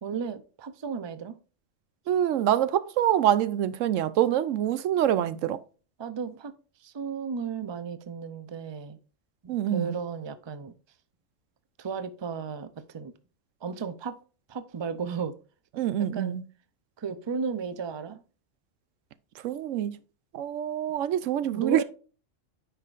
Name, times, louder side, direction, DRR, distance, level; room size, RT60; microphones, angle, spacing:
voice 1, 0.0-1.4 6.0-9.0 9.4-10.7 11.8-13.1 13.6-14.2 14.5-15.4 16.0-16.4 17.0-18.2 21.5-21.8, right 6 dB, 30° right, 0.5 m, -34 dB
voice 2, 2.1-5.6 9.5-10.0 15.8-16.4 19.4-20.0 20.3-21.8, right 11 dB, 85° right, 1.0 m, -25 dB
9.5 x 5.7 x 2.5 m
omnidirectional pair, 1.3 m